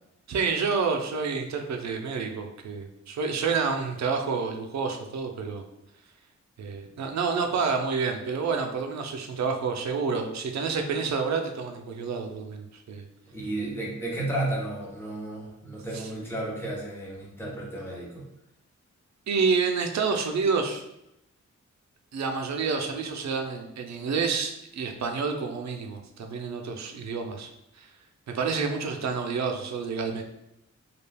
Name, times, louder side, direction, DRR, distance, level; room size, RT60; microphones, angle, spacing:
voice 1, 0.3-5.6 6.6-13.1 15.9-16.0 19.3-20.8 22.1-27.5 27.8-27.9 28.3-30.2, right 5 dB, 65° right, 4 dB, 0.5 m, -29 dB
voice 2, 13.3-18.2, right 1 dB, 10° left, -4 dB, 0.7 m, -33 dB
2.3 x 2.2 x 3.3 m, 0.83 s
wide cardioid pair, 145°, 30 cm